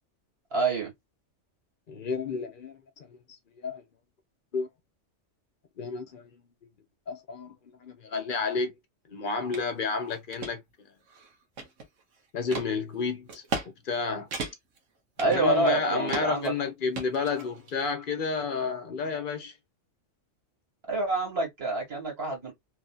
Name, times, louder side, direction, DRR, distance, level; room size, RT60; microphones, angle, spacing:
voice 1, 0.5-0.9 15.2-16.5 20.9-22.5, right 3 dB, 55° right, 2.0 m, -27 dB
voice 2, 1.9-3.2 3.6-3.9 4.5-4.7 5.8-6.5 7.1-8.7 9.1-10.6 12.3-13.4 13.9-14.3 15.2-19.5, left 4 dB, 50° left, 0.9 m, -31 dB
sound 1, 9.5-9.7 10.1-10.5 11.1-12.0 12.5-12.7 13.3-13.7 13.9-14.0 14.3-14.8 15.2-15.8 16.1-16.5 17.0-17.8, right 4 dB, 85° right, 1.3 m, -35 dB
3.1 x 2.7 x 2.3 m
omnidirectional pair, 1.3 m